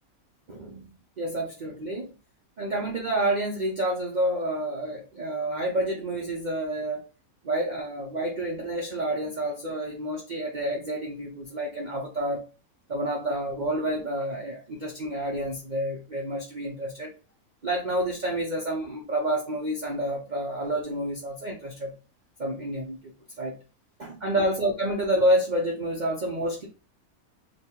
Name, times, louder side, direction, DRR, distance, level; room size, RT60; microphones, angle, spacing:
voice 1, 0.5-0.9 1.2-2.1 2.6-7.0 7.4-12.4 12.9-17.1 17.6-21.9 22.4-23.6 24.0-26.7, right 1 dB, 45° right, -2 dB, 0.6 m, -29 dB
3.1 x 2.2 x 4.2 m, 0.33 s
omnidirectional pair, 1.5 m